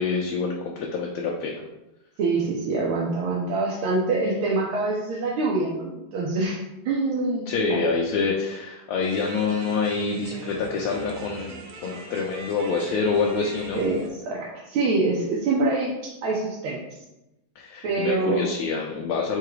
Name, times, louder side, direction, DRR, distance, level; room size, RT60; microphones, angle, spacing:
voice 1, 0.0-1.6 7.5-11.5 11.8-13.8 17.6-19.4, left 4 dB, 85° left, -1 dB, 1.5 m, -26 dB
voice 2, 2.2-6.6 6.8-7.8 13.7-15.9 16.2-16.8 17.8-18.5, right 3 dB, 90° right, -4 dB, 1.6 m, -25 dB
sound 1, 9.0-14.1, right 3 dB, 70° right, 0.8 m, -41 dB
4.7 x 2.3 x 4.7 m, 0.94 s
omnidirectional pair, 2.2 m